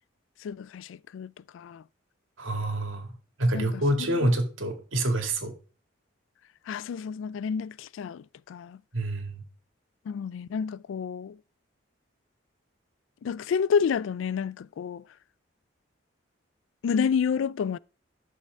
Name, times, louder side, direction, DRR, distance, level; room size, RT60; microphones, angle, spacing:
voice 1, 0.4-1.8 3.5-4.3 6.7-8.8 10.1-11.4 13.2-15.0 16.8-17.8, left 6 dB, 80° left, 0.3 m, -30 dB
voice 2, 2.4-5.5 8.9-9.4, right 1 dB, 90° right, 2.2 m, -27 dB
11.5 x 6.6 x 3.5 m
head